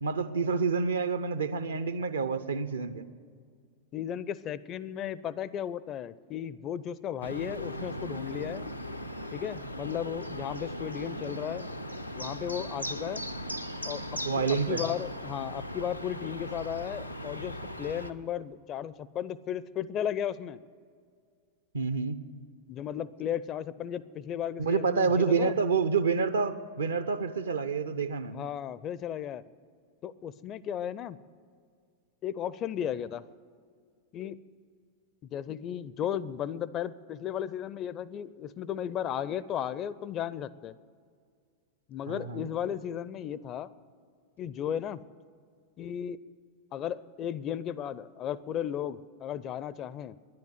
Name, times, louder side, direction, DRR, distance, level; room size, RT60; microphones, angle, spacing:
voice 1, 0.0-3.1 14.2-14.8 21.7-22.2 24.6-28.5 42.1-42.5, right 5 dB, 70° right, 13 dB, 0.6 m, -28 dB
voice 2, 3.9-8.7 9.3-11.6 12.1-13.2 13.8-20.6 22.7-25.5 28.3-29.4 30.0-31.2 32.2-33.2 34.1-34.4 35.3-40.7 41.9-43.7 44.4-45.0 45.8-46.2 46.7-50.2, left 9 dB, 30° left, 18 dB, 0.4 m, -35 dB
sound 1, 7.2-18.1, equal, 90° left, 0.6 m, -38 dB
10.5 x 10.5 x 9.6 m, 2.1 s
figure-of-eight pair, 90°, 0 cm